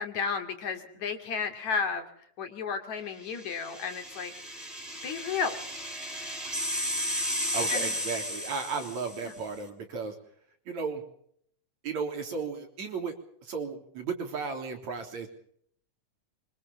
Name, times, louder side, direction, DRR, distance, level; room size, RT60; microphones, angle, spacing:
voice 1, 0.0-2.1 2.4-4.3 5.0-5.6 7.7-7.9 9.2-9.3, left 5 dB, 65° left, 6 dB, 3.9 m, -32 dB
sound 1, 3.4-9.3, equal, ahead, 5.7 m, -34 dB
voice 2, 7.5-10.1 10.7-11.0 11.8-13.1 13.4-15.3, right 5 dB, 65° right, 4 dB, 4.8 m, -34 dB
25.0 x 24.0 x 5.5 m, 0.66 s
omnidirectional pair, 3.5 m